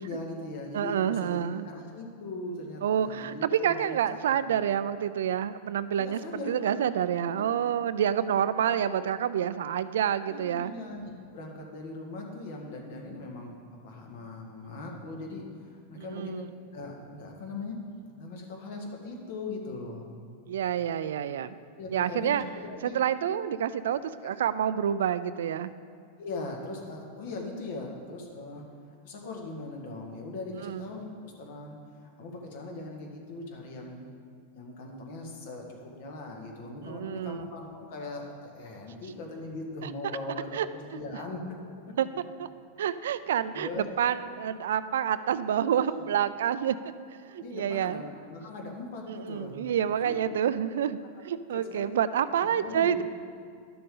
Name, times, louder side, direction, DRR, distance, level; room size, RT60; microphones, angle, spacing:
voice 1, 0.0-3.9 4.3-4.5 6.0-6.7 7.3-7.5 8.2-8.3 8.6-8.7 10.3-16.4 16.7-17.8 18.2-20.1 21.8-23.0 24.2-24.3 26.2-28.6 29.0-34.0 34.5-40.6 40.9-41.6 41.8-41.9 43.5-43.9 45.7-46.0 47.4-49.6 50.0-50.2 51.5-51.9 52.6-53.0, left 2 dB, 65° left, 1 dB, 1.7 m, -40 dB
voice 2, 0.7-1.7 2.8-6.2 6.5-10.7 16.0-16.5 20.5-21.5 21.9-22.4 22.8-25.7 30.6-30.8 36.8-37.4 39.8-39.9 40.5-40.7 42.0-42.1 42.4-42.5 42.8-46.8 47.3-48.0 49.1-53.0, right 9 dB, 85° right, 14 dB, 0.4 m, -28 dB
12.0 x 6.8 x 3.8 m, 2.2 s
supercardioid pair, 140°, 0 cm